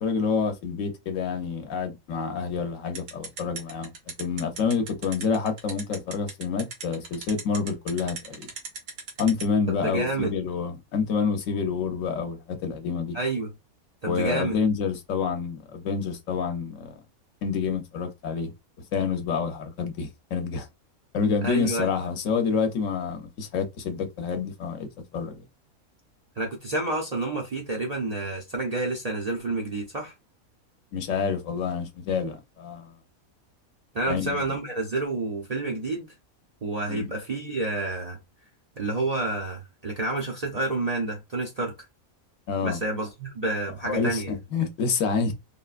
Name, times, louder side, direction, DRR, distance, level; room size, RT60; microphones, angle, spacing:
voice 1, 0.0-3.9 4.2-8.5 9.2-13.2 14.1-17.0 17.4-18.5 18.9-20.7 21.1-24.9 25.1-25.4 30.9-32.9 34.1-34.4 36.9-37.1 42.5-42.8 43.9-45.3, left 5 dB, 65° left, 1.0 m, -28 dB
sound 1, 2.9-9.4, right 5 dB, 90° right, 1.5 m, -36 dB
voice 2, 9.8-10.4 13.1-13.5 14.0-14.6 21.4-21.9 26.4-30.1 33.9-36.1 36.6-38.2 38.8-41.7 42.6-44.4, right 2 dB, 45° right, 0.5 m, -29 dB
3.5 x 2.2 x 2.4 m
omnidirectional pair, 1.6 m